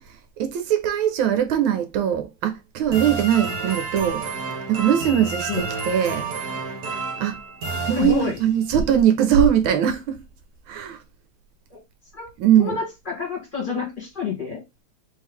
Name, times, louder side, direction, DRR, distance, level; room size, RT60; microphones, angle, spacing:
voice 1, 0.0-4.2 4.7-6.3 7.2-7.4 7.9-10.2 10.7-11.0 12.4-12.8, right 9 dB, 80° right, 1.4 m, -21 dB
sound 1, 2.9-8.6, right 4 dB, 55° right, 1.6 m, -30 dB
voice 2, 7.9-8.4 11.7-11.8 12.1-12.3 12.6-14.6, left 6 dB, 25° left, 1.9 m, -28 dB
3.6 x 3.3 x 3.5 m
omnidirectional pair, 2.3 m